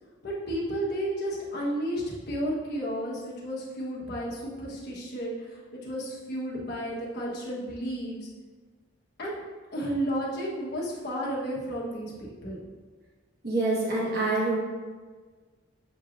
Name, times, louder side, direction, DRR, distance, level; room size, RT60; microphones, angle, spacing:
voice 1, 0.2-8.3 9.2-9.3 9.7-12.6, equal, 55° left, -5 dB, 1.2 m, -32 dB
voice 2, 13.4-14.6, right 2 dB, 55° right, -6 dB, 1.2 m, -26 dB
6.9 x 3.0 x 2.5 m, 1.4 s
head